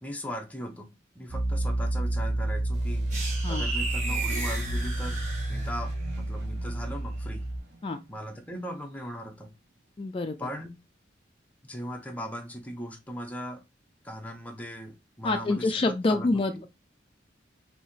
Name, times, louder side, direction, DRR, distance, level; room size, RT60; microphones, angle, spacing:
voice 1, 0.0-3.1 3.5-5.2 5.5-7.5 8.1-9.5 10.4-10.7 11.6-13.6 14.0-16.6, equal, 10° left, 0.7 m, -39 dB
Piano, 1.3-7.6, right 1 dB, 80° right, 1.7 m, -30 dB
sound 1, 2.7-9.3, right 1 dB, 65° right, 0.9 m, -47 dB
sound 2, 3.1-6.0, right 2 dB, 40° right, 1.8 m, -34 dB
voice 2, 10.0-10.5 15.2-16.7, left 2 dB, 30° left, 0.3 m, -27 dB
5.3 x 2.8 x 3.2 m
head